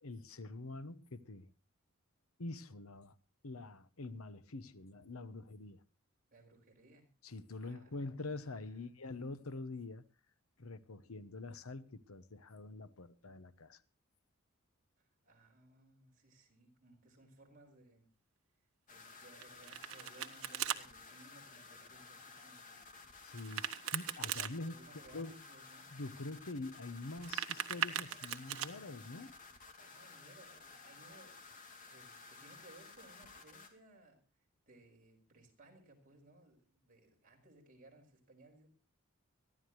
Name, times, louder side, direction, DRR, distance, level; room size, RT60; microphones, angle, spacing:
voice 1, 0.0-1.5 2.4-3.1 3.4-5.8 7.2-10.0 10.6-13.8 23.2-24.7 25.1-25.3 25.9-29.4, left 2 dB, 85° left, 1.0 m, -45 dB
voice 2, 6.3-7.1 7.6-8.4 8.7-8.9 15.2-18.1 18.9-22.9 24.6-25.9 29.8-31.4 31.9-34.2 34.7-38.7, right 2 dB, 40° right, 5.1 m, -62 dB
sound 1, 18.9-33.7, left 4 dB, 40° left, 2.7 m, -55 dB
Domestic sounds home sounds, 19.4-20.8 23.4-24.5 27.0-28.7, right 10 dB, 80° right, 1.3 m, -39 dB
22.5 x 15.0 x 3.1 m
head